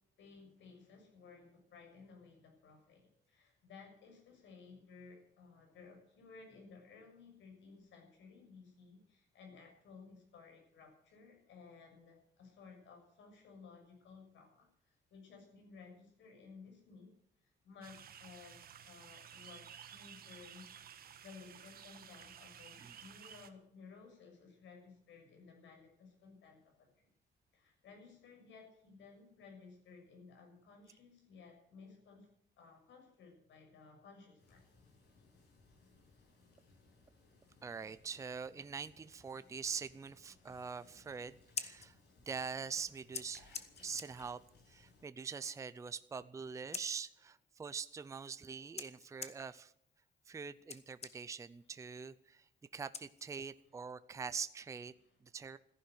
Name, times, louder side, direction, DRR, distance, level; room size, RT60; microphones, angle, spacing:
voice 1, 0.2-17.1 17.4-27.1 27.5-32.3 32.6-34.6 39.1-39.2 43.5-43.7 48.7-48.9 51.6-51.7 53.8-53.9 55.0-55.2, left 4 dB, 85° left, 3 dB, 6.8 m, -57 dB
sound 1, 17.8-23.5, right 9 dB, 55° right, 1.4 m, -54 dB
sound 2, 34.4-45.1, left 3 dB, 65° left, 6.9 m, -65 dB
voice 2, 37.6-42.0 42.3-44.4 44.7-49.7 50.3-52.5 52.7-54.9 55.2-55.6, right 5 dB, 15° right, 14 dB, 0.5 m, -44 dB
Scissors, 41.3-53.7, left 6 dB, 35° left, 1.2 m, -51 dB
14.5 x 11.0 x 9.1 m, 0.69 s
cardioid pair, 165°, 19 cm